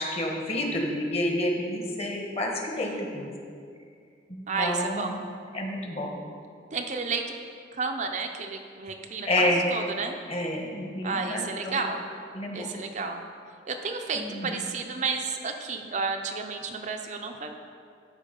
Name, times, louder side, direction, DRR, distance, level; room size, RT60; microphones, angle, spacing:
voice 1, 0.0-3.3 4.3-5.2 5.5-6.1 9.2-9.6 10.3-11.8 12.3-12.7 14.1-14.6, left 1 dB, 35° left, 1 dB, 1.2 m, -29 dB
voice 2, 2.8-3.1 4.5-5.3 6.7-7.2 7.7-10.2 11.0-12.0 12.5-13.2 13.7-17.5, right 4 dB, 45° right, 4 dB, 0.6 m, -32 dB
12.0 x 4.5 x 5.3 m, 2.3 s
head